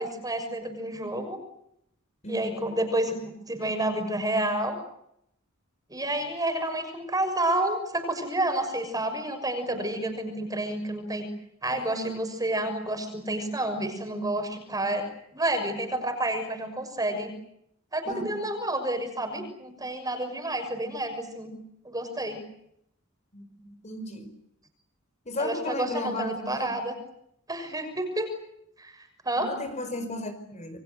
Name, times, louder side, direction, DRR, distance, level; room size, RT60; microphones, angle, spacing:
voice 1, 0.0-1.4 2.3-4.8 5.9-11.3 11.6-15.0 15.3-17.3 17.9-21.6 21.8-22.4 25.4-27.0 27.5-28.3 28.8-29.0 29.2-29.5, right 1 dB, 20° right, 7 dB, 6.4 m, -29 dB
voice 2, 2.2-2.8 11.7-12.2 18.1-18.5 23.3-24.3 25.2-26.8 29.4-30.8, left 1 dB, 35° left, 8 dB, 4.7 m, -35 dB
29.0 x 23.5 x 8.0 m, 0.77 s
head